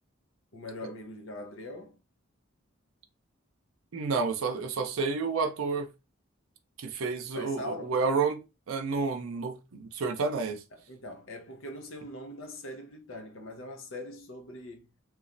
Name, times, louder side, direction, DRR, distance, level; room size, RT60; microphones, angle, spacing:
voice 1, 0.5-2.0 7.3-8.0 10.7-14.9, left 1 dB, 70° left, 0.7 m, -42 dB
voice 2, 3.9-5.9 6.8-8.4 8.7-10.6, right 4 dB, 80° right, 0.5 m, -30 dB
3.0 x 2.3 x 2.5 m
head